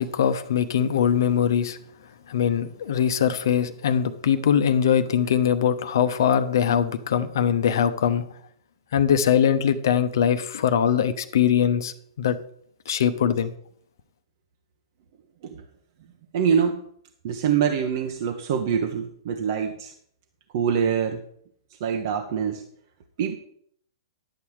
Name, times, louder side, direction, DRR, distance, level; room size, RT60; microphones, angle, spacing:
voice 1, 0.0-1.8 2.3-8.2 8.9-12.4 12.9-13.5, left 8 dB, 60° left, 0.9 m, -22 dB
voice 2, 16.3-16.8 17.2-19.9 20.5-21.2 21.8-22.6 23.2-23.3, right 7 dB, 50° right, 1.0 m, -24 dB
11.0 x 7.0 x 4.8 m
figure-of-eight pair, 110°, 2 cm